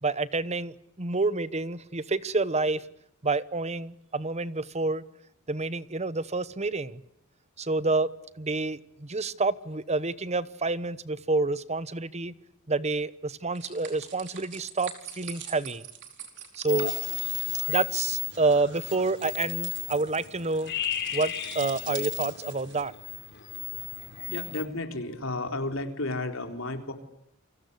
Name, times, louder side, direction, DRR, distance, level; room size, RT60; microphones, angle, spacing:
voice 1, 0.0-2.8 3.2-5.0 5.5-7.0 7.6-8.1 8.4-12.3 12.7-15.9 16.5-16.9 17.7-20.7 21.1-22.9, right 3 dB, 30° right, 17 dB, 1.0 m, -28 dB
sound 1, 13.5-22.8, right 8 dB, 60° right, 4.9 m, -45 dB
sound 2, 16.7-24.6, left 10 dB, 55° left, 4.3 m, -34 dB
voice 2, 24.3-26.9, left 2 dB, 70° left, 6 dB, 4.0 m, -32 dB
29.5 x 24.5 x 8.2 m, 0.76 s
head